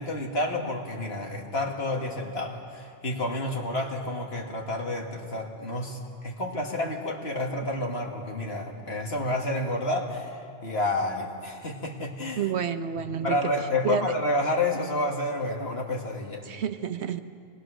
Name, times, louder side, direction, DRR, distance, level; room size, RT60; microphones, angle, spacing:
voice 1, 0.0-12.5 13.2-16.5, left 2 dB, 65° left, 1 dB, 2.4 m, -30 dB
voice 2, 12.4-13.4 13.8-14.1 16.4-17.2, right 7 dB, 75° right, 9 dB, 1.2 m, -29 dB
25.0 x 20.0 x 6.5 m, 2.3 s
omnidirectional pair, 1.1 m